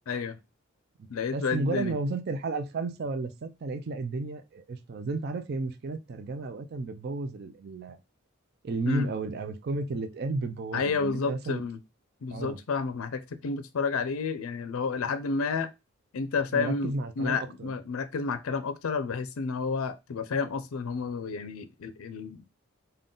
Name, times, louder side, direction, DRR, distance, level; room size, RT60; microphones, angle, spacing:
voice 1, 0.1-0.4 1.1-2.0 8.9-9.1 10.7-11.8 12.2-15.7 16.1-22.5, left 5 dB, 85° left, 0.4 m, -30 dB
voice 2, 1.0-8.0 8.6-11.6 12.3-12.6 16.5-17.7, right 3 dB, 50° right, 0.4 m, -33 dB
3.7 x 2.2 x 3.7 m
head